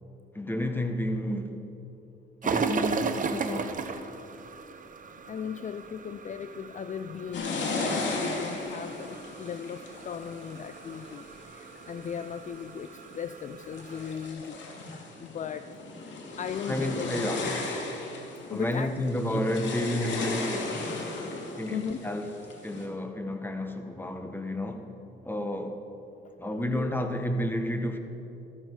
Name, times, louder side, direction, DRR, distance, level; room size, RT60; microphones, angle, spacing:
voice 1, 0.3-1.5 2.4-3.8 16.7-17.5 18.5-20.8 21.6-22.3 22.6-24.8 25.2-25.8 26.4-28.0, left 1 dB, 10° left, 1.4 m, -31 dB
sound 1, 2.4-14.3, right 5 dB, 40° right, 1.0 m, -36 dB
voice 2, 5.3-14.7 15.2-15.7 16.1-17.1 17.4-17.5 18.5-19.0 19.3-19.4 21.7-22.0 26.2-26.3 26.7-26.9, left 7 dB, 40° left, 0.5 m, -37 dB
sound 2, 7.3-12.1 12.7-13.2 13.6-22.9, left 3 dB, 65° left, 2.5 m, -36 dB
14.5 x 13.5 x 4.8 m
cardioid pair, 90°, 20 cm